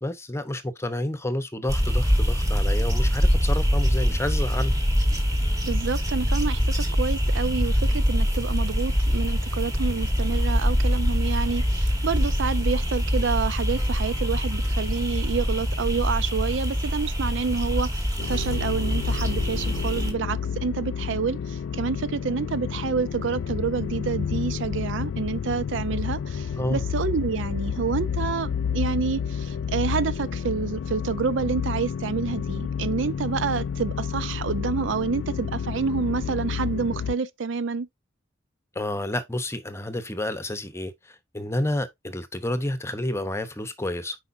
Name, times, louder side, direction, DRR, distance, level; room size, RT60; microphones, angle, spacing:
voice 1, 0.0-4.7 26.5-26.8 38.7-44.2, left 1 dB, 15° left, 0.8 m, -30 dB
sound 1, 1.7-20.1, equal, 20° right, 1.5 m, -24 dB
voice 2, 5.6-37.9, right 5 dB, 70° right, 0.5 m, -28 dB
sound 2, 18.2-37.2, left 7 dB, 75° left, 0.3 m, -30 dB
8.2 x 4.9 x 2.6 m
head